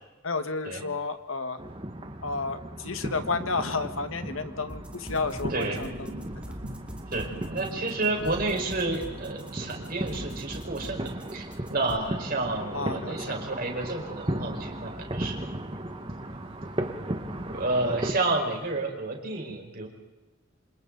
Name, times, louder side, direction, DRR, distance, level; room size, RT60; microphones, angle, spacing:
voice 1, 0.2-1.6 2.2-6.1 12.7-13.4, left 3 dB, 85° left, 9 dB, 1.6 m, -31 dB
sound 1, 1.6-18.1, right 1 dB, 25° right, 1.6 m, -36 dB
sound 2, 4.7-12.0, equal, 5° right, 2.3 m, -43 dB
sound 3, 5.1-18.7, equal, 70° right, 2.5 m, -47 dB
voice 2, 7.1-11.4 11.7-15.5 17.5-19.9, right 2 dB, 45° right, 1 dB, 5.0 m, -30 dB
28.5 x 26.5 x 4.0 m, 1.1 s
head